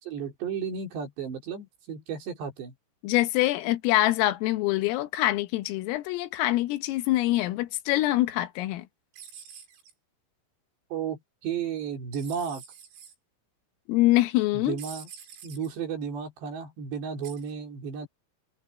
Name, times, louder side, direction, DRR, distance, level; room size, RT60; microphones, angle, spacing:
voice 1, 0.0-2.7 10.9-12.6 14.5-15.1 15.4-18.1, right 7 dB, 55° right, 5.4 m, -33 dB
voice 2, 3.0-8.9 13.9-14.8, left 16 dB, 80° left, 3.7 m, -25 dB
sound 1, 9.1-9.9 12.1-13.2 14.8-15.7 17.2-17.5, right 8 dB, 85° right, 7.1 m, -46 dB
omnidirectional pair, 6.0 m